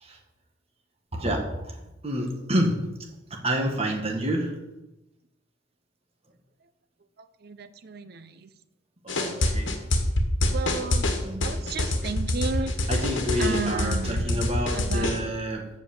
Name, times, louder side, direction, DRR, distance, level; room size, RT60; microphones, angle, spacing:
voice 1, 1.1-1.8 2.0-2.9 3.3-4.6 9.0-9.7 11.2-11.6 12.9-15.7, equal, 30° right, 2 dB, 1.7 m, -28 dB
voice 2, 7.4-8.5 9.4-9.6 10.5-11.1 11.4-12.7 13.4-14.4 14.7-15.2, right 4 dB, 55° right, 12 dB, 0.7 m, -33 dB
sound 1, 9.1-15.2, left 1 dB, 80° left, 1.5 m, -26 dB
8.1 x 6.9 x 7.1 m, 0.97 s
head